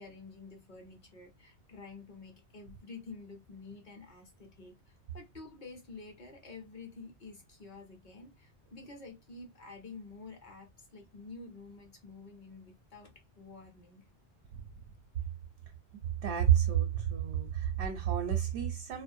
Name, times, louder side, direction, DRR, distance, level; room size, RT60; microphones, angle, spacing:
voice 1, 0.0-14.1, left 3 dB, 45° left, 0.8 m, -49 dB
voice 2, 16.2-19.0, right 10 dB, 75° right, 0.9 m, -29 dB
2.4 x 2.0 x 2.6 m
omnidirectional pair, 1.2 m